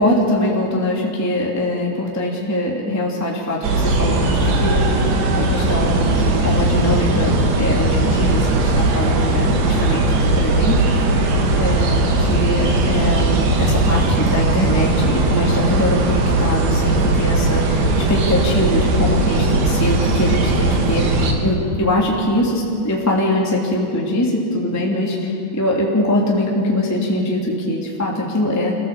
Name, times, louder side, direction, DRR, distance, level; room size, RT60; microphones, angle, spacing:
voice 1, 0.0-5.0 5.3-10.9 11.5-21.0 21.4-28.7, left 1 dB, 5° left, -3 dB, 1.7 m, -22 dB
sound 1, 3.6-21.3, right 2 dB, 75° right, 4.1 m, -18 dB
28.0 x 15.5 x 7.3 m, 2.5 s
omnidirectional pair, 5.0 m